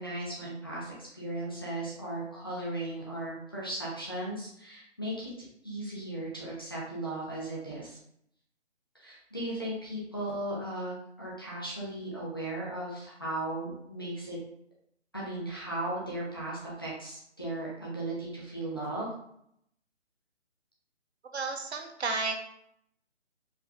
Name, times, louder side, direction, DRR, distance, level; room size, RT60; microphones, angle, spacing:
voice 1, 0.0-5.3 5.6-8.0 8.9-14.4 15.1-19.1, right 1 dB, 20° left, -7 dB, 0.6 m, -36 dB
voice 2, 21.3-22.4, right 3 dB, 60° right, 4 dB, 0.8 m, -32 dB
4.7 x 3.1 x 2.3 m, 0.71 s
hypercardioid pair, 165°, 36 cm